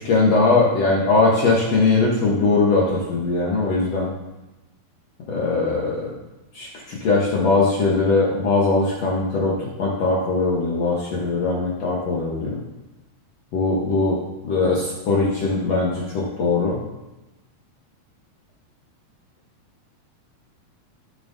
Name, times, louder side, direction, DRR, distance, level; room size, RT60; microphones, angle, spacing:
voice 1, 0.0-4.1 5.3-6.1 6.5-12.6 13.5-14.2 14.4-16.8, left 3 dB, 75° left, -4 dB, 1.5 m, -20 dB
16.5 x 7.2 x 2.7 m, 1.1 s
omnidirectional pair, 4.9 m